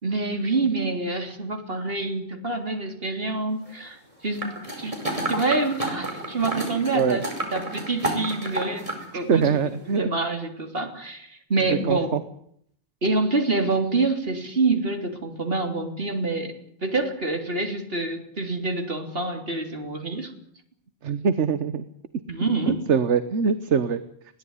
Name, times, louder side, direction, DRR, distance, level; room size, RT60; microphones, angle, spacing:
voice 1, 0.0-5.0 5.3-7.3 7.5-8.9 9.1-9.6 9.9-12.1 13.0-16.5 16.8-20.3 22.3-22.8, right 3 dB, 50° right, 6 dB, 3.8 m, -26 dB
sound 1, 4.4-9.0 9.4-9.5, right 1 dB, 25° right, 5.4 m, -30 dB
voice 2, 9.1-10.1 11.7-12.2 21.0-21.9 22.9-24.0, right 6 dB, 70° right, 12 dB, 1.4 m, -23 dB
21.5 x 17.0 x 9.7 m, 0.69 s
omnidirectional pair, 1.3 m